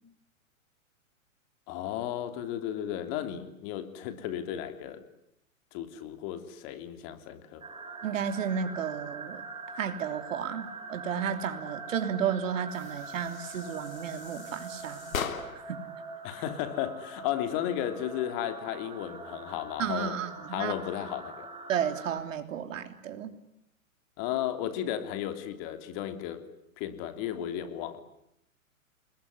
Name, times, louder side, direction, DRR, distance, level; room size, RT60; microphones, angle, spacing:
voice 1, 1.7-5.0 5.7-7.7 16.2-20.2 20.5-21.5 24.2-26.5 26.8-28.0, left 11 dB, 40° left, 9 dB, 3.2 m, -34 dB
sound 1, 7.6-22.2, right 4 dB, 15° right, 4.8 m, -43 dB
voice 2, 8.0-9.4 9.7-15.2 15.5-15.9 19.8-20.8 21.7-23.4, right 8 dB, 65° right, 8 dB, 3.3 m, -33 dB
sound 2, 12.7-15.8, left 7 dB, 80° left, 3.2 m, -39 dB
29.0 x 21.5 x 9.7 m, 0.78 s
hypercardioid pair, 130°, 41 cm